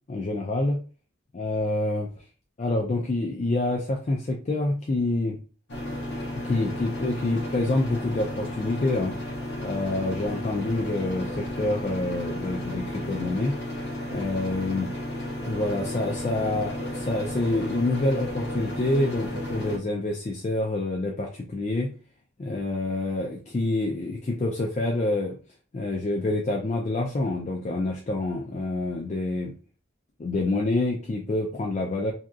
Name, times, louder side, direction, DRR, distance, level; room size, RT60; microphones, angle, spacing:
voice 1, 0.1-0.8 1.3-2.1 2.6-5.4 6.4-9.1 9.6-13.5 14.1-14.9 15.4-21.9 22.4-25.4 25.7-29.5 30.2-32.1, left 2 dB, 35° left, -1 dB, 0.4 m, -27 dB
sound 1, 5.7-19.8, left 1 dB, 60° left, 0.8 m, -33 dB
2.7 x 2.4 x 2.2 m, 0.35 s
head